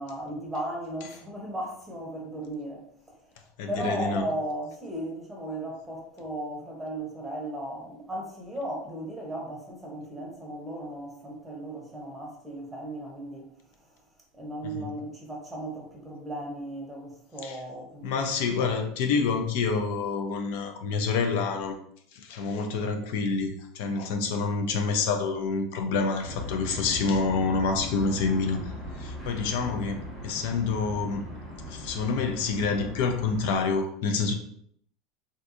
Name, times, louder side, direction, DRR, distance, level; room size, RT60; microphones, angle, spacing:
voice 1, 0.0-2.8 3.7-13.4 14.3-18.3 18.6-18.7, right 1 dB, 10° right, 0.8 m, -36 dB
voice 2, 3.6-4.3 14.6-14.9 17.4-17.6 18.0-21.8 22.1-28.7 29.0-31.2 31.7-34.3, left 4 dB, 70° left, 0.4 m, -27 dB
sound 1, 26.2-33.6, left 1 dB, 20° left, 1.3 m, -39 dB
3.5 x 2.6 x 2.5 m
supercardioid pair, 145°, 0 cm